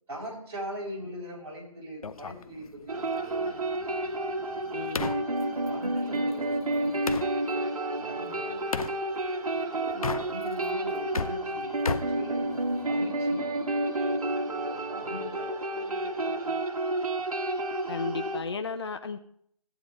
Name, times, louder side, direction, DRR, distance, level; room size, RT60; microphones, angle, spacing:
voice 1, 0.1-3.6 5.6-8.7 9.5-16.5, equal, 50° right, -3 dB, 5.5 m, -42 dB
sound 1, 2.0-7.3 8.7-9.0 9.9-10.7 11.0-12.9, left 5 dB, 75° left, 0.7 m, -36 dB
sound 2, 2.9-18.4, right 1 dB, 75° right, 1.7 m, -30 dB
voice 2, 4.7-5.2 17.9-19.2, left 4 dB, 45° left, 8 dB, 0.8 m, -34 dB
14.5 x 9.1 x 3.4 m, 0.67 s
hypercardioid pair, 170°, 19 cm